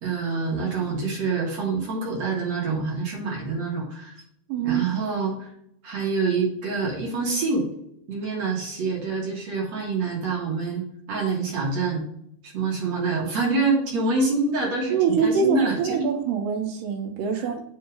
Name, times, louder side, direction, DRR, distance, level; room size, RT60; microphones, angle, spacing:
voice 1, 0.0-4.2 4.6-5.5 5.8-7.7 8.1-12.0 12.4-16.0 17.3-17.5, right 3 dB, 55° right, -2 dB, 2.2 m, -26 dB
voice 2, 4.5-4.9 14.9-17.6, right 6 dB, 90° right, 5 dB, 2.5 m, -24 dB
7.7 x 2.7 x 5.0 m, 0.72 s
omnidirectional pair, 4.0 m